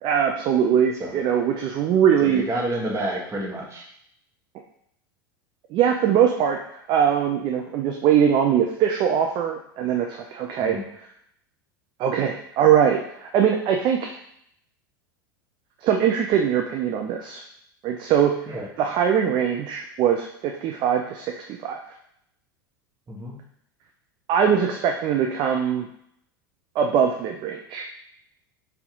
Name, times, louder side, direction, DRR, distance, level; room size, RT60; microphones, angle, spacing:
voice 1, 0.0-2.4 5.7-10.8 12.0-14.2 15.8-17.4 17.8-21.8 24.3-25.9 26.8-27.9, right 8 dB, 40° right, 2 dB, 0.5 m, -22 dB
voice 2, 2.2-3.8 10.6-10.8 18.5-18.7 23.1-23.4, right 1 dB, 25° right, -2 dB, 1.3 m, -29 dB
4.1 x 2.8 x 3.6 m, 0.71 s
figure-of-eight pair, 85°, 12 cm